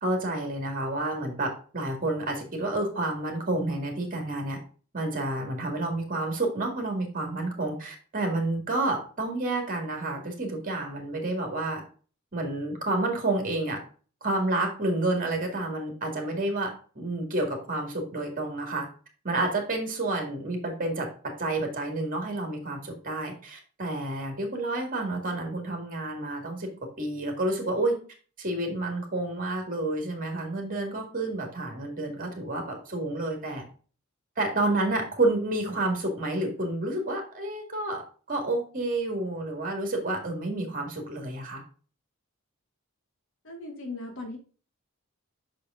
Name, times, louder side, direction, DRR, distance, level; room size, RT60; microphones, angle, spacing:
voice 1, 0.0-4.6 4.9-11.8 12.3-13.8 14.2-18.9 19.2-21.1 21.4-26.7 27.0-28.0 28.4-33.6 34.4-38.0 38.3-41.6, right 2 dB, 40° right, 3 dB, 2.0 m, -29 dB
voice 2, 43.4-44.4, left 2 dB, 65° left, 2 dB, 2.1 m, -38 dB
6.0 x 5.1 x 3.7 m, 0.39 s
head